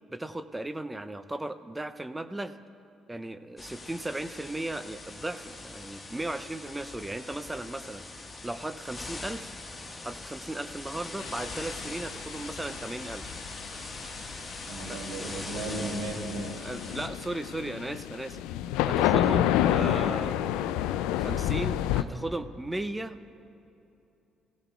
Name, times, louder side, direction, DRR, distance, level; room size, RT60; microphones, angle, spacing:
voice 1, 0.1-2.6 3.1-8.0 8.4-9.5 10.0-13.2 14.9-15.3 16.6-18.4 18.8-20.5 21.2-23.3, right 1 dB, 15° right, 12 dB, 0.5 m, -36 dB
sound 1, 3.6-17.1, left 2 dB, 20° left, 1.5 m, -42 dB
sound 2, 11.2-22.0, left 12 dB, 75° left, 0.3 m, -29 dB
voice 2, 14.7-16.7, right 3 dB, 80° right, 2 dB, 1.1 m, -36 dB
17.5 x 16.0 x 2.3 m, 2.8 s
hypercardioid pair, 50°, 0 cm